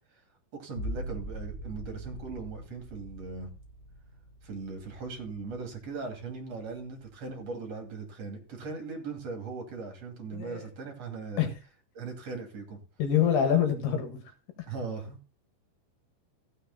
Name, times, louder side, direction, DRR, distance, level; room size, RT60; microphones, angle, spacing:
voice 1, 0.5-3.5 4.4-11.5 11.9-12.8 14.7-15.2, right 4 dB, 40° right, 3 dB, 3.1 m, -39 dB
sound 1, 0.7-6.2 6.7-7.3, right 1 dB, 25° left, 3.9 m, -42 dB
voice 2, 10.3-10.7 11.4-11.5 13.0-14.2, left 9 dB, 65° left, 6 dB, 3.3 m, -26 dB
15.5 x 6.7 x 4.0 m, 0.30 s
omnidirectional pair, 5.3 m